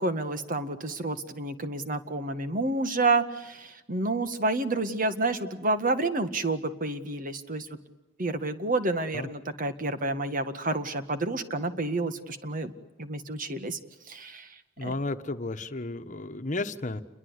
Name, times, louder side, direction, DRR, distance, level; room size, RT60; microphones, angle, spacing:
voice 1, 0.0-7.7 8.2-12.7 13.0-13.8 14.1-14.5 14.8-14.9, right 2 dB, 50° right, 9 dB, 1.9 m, -29 dB
voice 2, 14.8-17.0, left 2 dB, 45° left, 8 dB, 1.3 m, -33 dB
29.0 x 22.5 x 8.2 m, 0.97 s
head